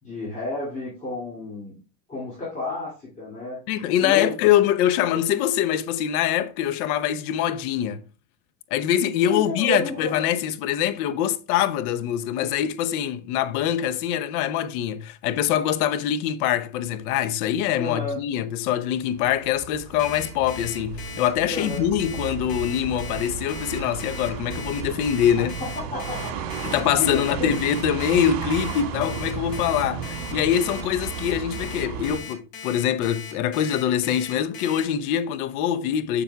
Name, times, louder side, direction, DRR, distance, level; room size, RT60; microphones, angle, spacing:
voice 1, 0.0-1.8 2.1-3.6 4.0-4.3 9.3-10.2 17.8-18.2 21.5-21.9 25.4-26.7 27.0-27.5, left 2 dB, 15° left, 2.4 m, -31 dB
voice 2, 3.7-8.0 8.7-25.5 26.7-36.2, left 10 dB, 65° left, 0.8 m, -24 dB
sound 1, 19.1-32.2, right 7 dB, 80° right, 1.6 m, -34 dB
Alarm, 20.0-34.8, left 6 dB, 30° left, 1.3 m, -39 dB
7.0 x 6.9 x 2.3 m
cardioid pair, 165°, 47 cm